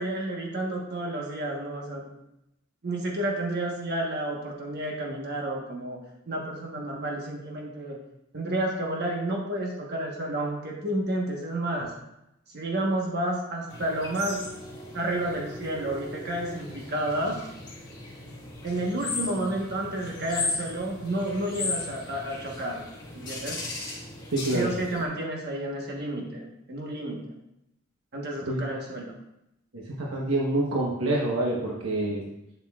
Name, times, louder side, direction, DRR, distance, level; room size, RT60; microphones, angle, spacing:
voice 1, 0.0-2.2 2.8-6.0 6.3-8.0 8.3-11.9 12.5-14.4 14.9-17.4 18.6-22.9 23.1-23.6 24.5-27.3 28.1-29.2, right 1 dB, 50° right, -1 dB, 1.2 m, -30 dB
sound 1, 13.7-25.0, left 3 dB, 20° left, 1.9 m, -37 dB
voice 2, 24.3-24.7 28.5-28.6 29.7-32.2, right 1 dB, 80° right, -3 dB, 1.1 m, -27 dB
8.1 x 7.5 x 2.4 m, 0.85 s
head